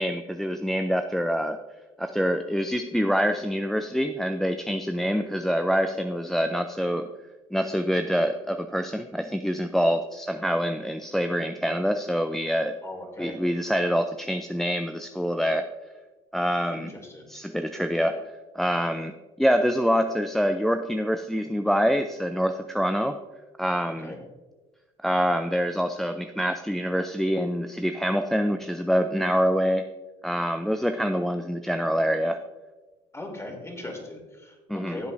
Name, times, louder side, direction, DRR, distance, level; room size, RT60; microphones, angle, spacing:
voice 1, 0.0-1.6 2.0-7.1 7.5-12.8 13.2-15.7 16.3-16.9 17.3-18.2 18.6-19.1 19.4-23.2 23.6-24.1 25.0-29.9 30.2-32.4 34.7-35.0, equal, ahead, 7 dB, 0.5 m, -25 dB
voice 2, 12.8-13.4 16.7-17.2 24.0-24.2 33.1-34.5 34.9-35.1, left 2 dB, 20° left, 2 dB, 3.0 m, -38 dB
15.0 x 7.9 x 2.6 m, 1.2 s
hypercardioid pair, 65°, 15 cm